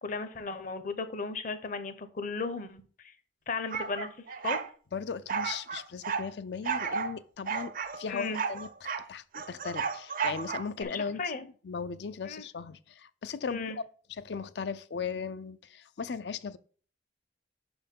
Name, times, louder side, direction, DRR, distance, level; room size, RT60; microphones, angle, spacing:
voice 1, 0.0-3.1 3.5-4.1 4.4-4.6 8.1-8.4 10.8-11.5 12.2-12.4 13.5-13.8, left 4 dB, 45° left, 0.8 m, -35 dB
sound 1, 3.7-4.7 5.3-6.3 6.6-7.1 7.5-9.1 9.3-10.8, right 6 dB, 50° right, 0.5 m, -33 dB
voice 2, 4.9-8.7 9.1-13.8 14.1-16.6, left 5 dB, 65° left, 0.5 m, -37 dB
5.8 x 4.4 x 5.3 m
head